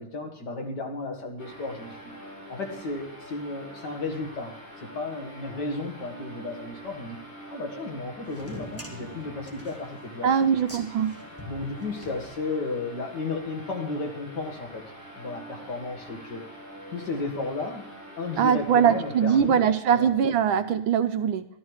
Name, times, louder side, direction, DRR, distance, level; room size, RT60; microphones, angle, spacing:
voice 1, 0.0-2.1 2.5-7.2 7.5-10.5 11.4-16.5 16.9-17.8 18.2-19.6 19.9-20.1, left 3 dB, 50° left, 3 dB, 2.3 m, -34 dB
sound 1, 1.4-19.8, equal, 80° left, 5.8 m, -45 dB
sound 2, 8.3-12.8, equal, 5° left, 1.8 m, -45 dB
voice 2, 10.2-11.1 18.4-21.4, right 7 dB, 75° right, 10 dB, 1.4 m, -22 dB
12.5 x 12.5 x 4.8 m, 0.75 s
omnidirectional pair, 2.4 m